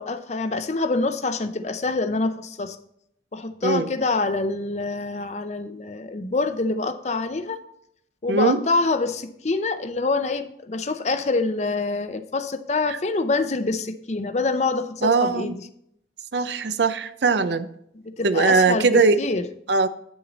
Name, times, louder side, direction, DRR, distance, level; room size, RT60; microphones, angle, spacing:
voice 1, 0.0-2.8 3.3-7.6 8.2-15.6 18.0-19.4, left 3 dB, 40° left, 10 dB, 0.6 m, -26 dB
voice 2, 8.3-8.6 12.9-13.0 15.0-15.5 16.3-17.7 18.2-19.2 19.7-19.9, right 4 dB, 75° right, 12 dB, 0.6 m, -20 dB
9.1 x 7.1 x 4.0 m, 0.73 s
head